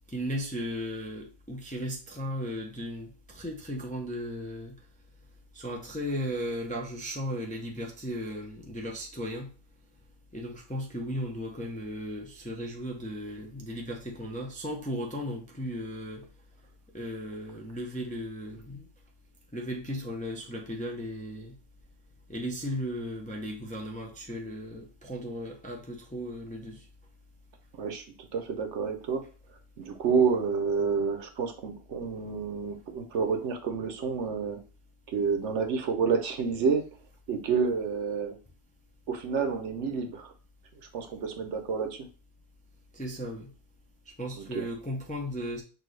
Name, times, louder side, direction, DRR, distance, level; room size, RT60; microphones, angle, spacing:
voice 1, 0.1-4.8 5.5-9.5 10.3-16.3 16.9-18.9 19.5-21.5 22.3-26.9 42.9-43.5 44.2-45.6, equal, 10° left, 0.5 m, -36 dB
voice 2, 28.3-29.2 29.8-34.6 35.1-36.8 37.3-38.4 39.1-40.3 40.9-42.1 44.4-44.6, right 5 dB, 70° right, 1.0 m, -29 dB
6.1 x 2.7 x 3.2 m
omnidirectional pair, 1.3 m